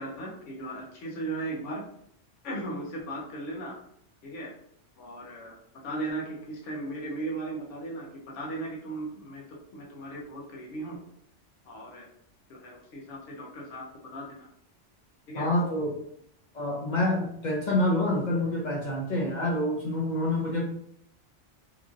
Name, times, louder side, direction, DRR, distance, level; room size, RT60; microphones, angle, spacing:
voice 1, 0.0-1.8 2.4-3.7 4.2-4.5 5.0-11.0 11.7-12.1 12.5-14.5 15.3-15.5, right 2 dB, 80° left, -2 dB, 1.0 m, -37 dB
voice 2, 15.4-16.0 16.5-20.6, left 1 dB, 50° left, -2 dB, 0.6 m, -27 dB
2.9 x 2.5 x 2.4 m, 0.70 s
omnidirectional pair, 1.3 m